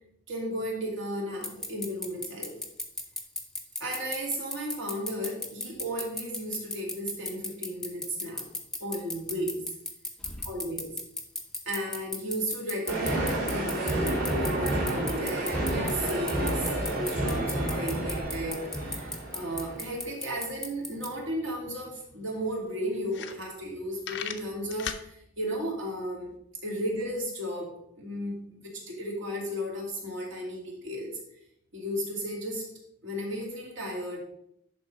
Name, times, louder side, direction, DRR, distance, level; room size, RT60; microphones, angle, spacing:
voice 1, 0.3-2.6 3.8-8.5 8.8-9.6 10.4-10.9 11.7-26.3 26.6-31.1 31.7-32.6 33.0-34.2, equal, 60° right, -2 dB, 2.6 m, -34 dB
sound 1, 1.4-21.1, left 2 dB, 5° left, 0.7 m, -34 dB
sound 2, 12.9-19.9, right 1 dB, 45° right, 2.7 m, -30 dB
sound 3, 21.7-21.8 22.1-22.2 22.7-22.8 23.1-23.7 24.0-25.1, left 8 dB, 55° left, 0.6 m, -36 dB
11.0 x 3.7 x 5.0 m, 0.76 s
head